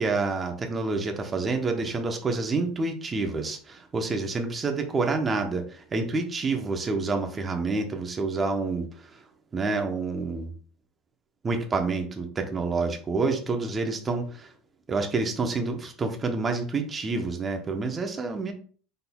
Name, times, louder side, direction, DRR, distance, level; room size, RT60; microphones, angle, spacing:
voice 1, 0.0-8.9 9.5-10.5 11.4-14.5 14.9-18.5, right 3 dB, 20° right, 5 dB, 0.9 m, -28 dB
5.2 x 4.2 x 2.3 m, 0.43 s
supercardioid pair, 130°, 0 cm